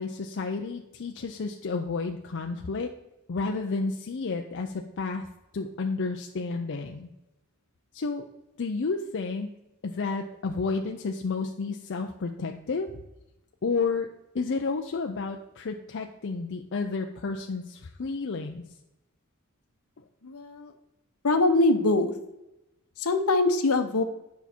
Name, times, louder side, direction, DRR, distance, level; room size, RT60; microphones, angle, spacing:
voice 1, 0.0-2.9 3.3-5.3 5.5-7.1 7.9-8.2 8.6-9.5 9.8-12.9 13.6-14.1 14.3-18.6, left 4 dB, 55° left, 3 dB, 0.5 m, -31 dB
voice 2, 20.2-20.7 21.2-22.1 23.0-24.0, left 2 dB, 70° left, 8 dB, 0.9 m, -23 dB
9.3 x 5.6 x 4.4 m, 0.92 s
head